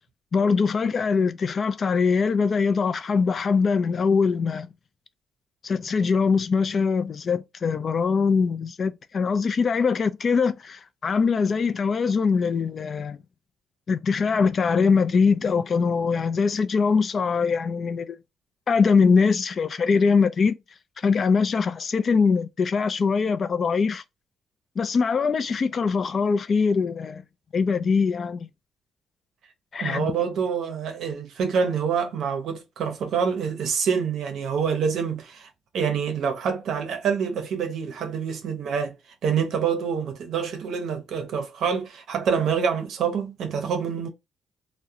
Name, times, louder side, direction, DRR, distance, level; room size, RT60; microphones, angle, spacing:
voice 1, 0.3-4.7 5.6-13.2 13.9-18.2 18.7-20.6 21.0-24.0 24.8-27.2 27.5-28.5 29.7-30.1, left 5 dB, 45° left, 0.3 m, -22 dB
voice 2, 29.8-35.5 35.7-38.9 39.2-44.1, right 6 dB, 75° right, 0.6 m, -26 dB
2.3 x 2.0 x 2.7 m
cardioid pair, 90°, 0 cm